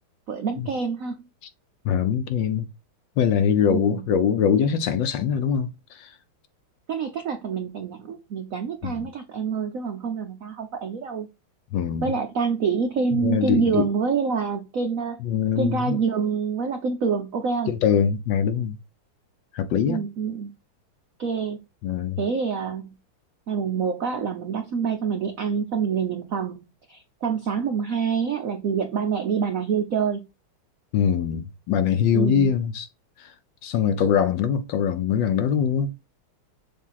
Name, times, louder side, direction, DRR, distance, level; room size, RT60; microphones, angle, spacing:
voice 1, 0.3-1.3 3.7-4.0 6.9-11.3 12.0-15.2 15.6-17.7 19.8-20.5 21.2-21.6 22.2-23.0 23.5-26.6 26.9-30.2 32.1-32.5, right 6 dB, 70° right, 0.8 m, -26 dB
voice 2, 1.8-2.7 3.2-6.1 8.8-9.1 11.7-12.1 13.1-13.9 15.2-16.0 17.7-18.8 19.5-20.0 21.8-22.2 30.9-32.9 33.2-33.3 33.6-35.9, left 8 dB, 70° left, 1.2 m, -23 dB
7.3 x 2.7 x 5.6 m
omnidirectional pair, 2.3 m